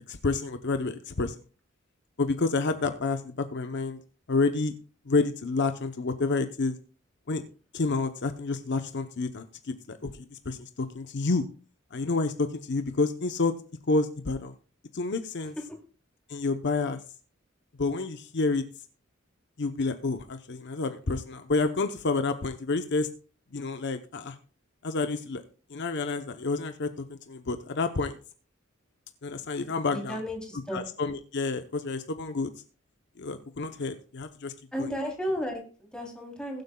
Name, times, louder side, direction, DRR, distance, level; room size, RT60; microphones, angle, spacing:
voice 1, 0.1-1.3 2.2-4.0 4.3-4.7 5.1-6.8 7.3-7.4 7.7-11.4 11.9-13.5 13.9-14.5 14.9-15.6 16.3-17.0 17.8-18.6 19.6-23.1 23.5-24.4 24.8-25.4 25.7-28.2 29.2-30.2 30.7-32.5 33.2-34.5 34.8-34.9, left 3 dB, 60° left, 8 dB, 0.8 m, -29 dB
voice 2, 29.9-30.8 34.7-36.6, equal, 5° left, 0 dB, 3.2 m, -33 dB
21.0 x 7.9 x 2.3 m, 0.38 s
head